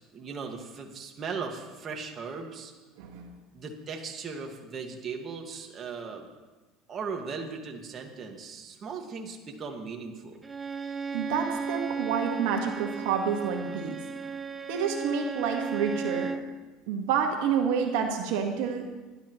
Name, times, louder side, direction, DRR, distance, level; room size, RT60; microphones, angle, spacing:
voice 1, 0.1-2.7 3.5-6.3 6.9-10.4, right 5 dB, 35° right, 2 dB, 1.9 m, -38 dB
voice 2, 3.0-3.3 11.1-14.0 14.7-16.3 16.9-18.9, right 7 dB, 80° right, 2 dB, 1.6 m, -28 dB
Bowed string instrument, 10.4-16.5, right 5 dB, 20° right, 0.7 m, -35 dB
20.0 x 11.5 x 3.1 m, 1.2 s
supercardioid pair, 110°, 0 cm